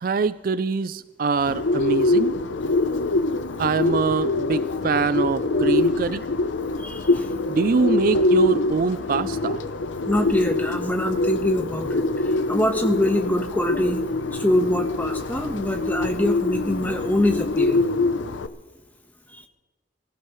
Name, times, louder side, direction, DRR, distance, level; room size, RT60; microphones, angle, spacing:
voice 1, 0.0-2.3 3.6-6.2 7.5-9.6, right 4 dB, 50° right, 15 dB, 0.4 m, -24 dB
Bird, 1.5-18.5, left 2 dB, 80° left, 0.7 m, -24 dB
voice 2, 6.8-7.3 10.1-14.0 14.3-17.8 19.3-19.4, left 1 dB, 10° left, 5 dB, 1.2 m, -24 dB
24.5 x 15.5 x 3.1 m, 1.3 s
head